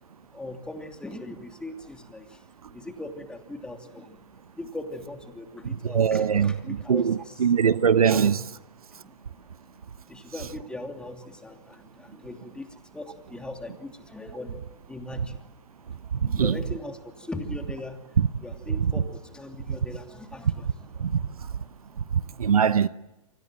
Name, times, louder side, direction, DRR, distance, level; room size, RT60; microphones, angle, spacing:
voice 1, 0.3-4.2 4.5-7.5 8.1-8.4 9.0-9.8 10.1-15.4 16.0-21.3 22.0-22.1, left 2 dB, 5° left, 2.9 m, -40 dB
voice 2, 5.8-6.5 6.9-8.4 16.2-16.6 18.2-18.3 18.8-18.9 21.0-21.2 22.4-22.9, right 7 dB, 80° right, 1.0 m, -21 dB
29.5 x 25.5 x 7.7 m
hypercardioid pair, 125°, 19 cm